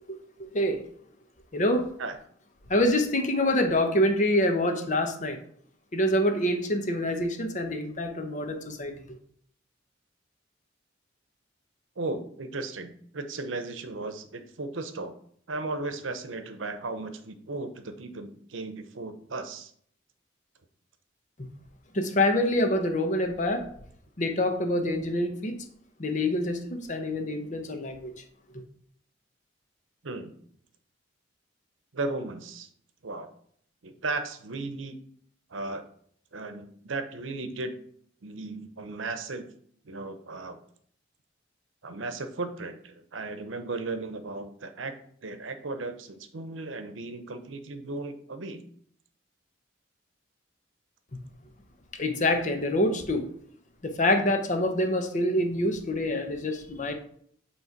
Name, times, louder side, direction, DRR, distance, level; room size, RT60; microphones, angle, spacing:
voice 1, 1.5-1.9 2.7-5.4 5.9-8.9 21.9-23.6 24.2-25.5 26.0-28.1 51.9-53.2 53.8-56.9, left 1 dB, 40° left, 6 dB, 0.9 m, -26 dB
voice 2, 12.0-15.1 15.5-19.7 30.0-30.3 31.9-32.7 33.0-33.3 33.8-35.0 35.5-35.9 36.3-37.7 38.2-39.4 39.8-40.6 41.8-44.9 45.2-48.6, right 3 dB, 85° right, 9 dB, 0.8 m, -35 dB
8.3 x 3.2 x 4.5 m, 0.63 s
head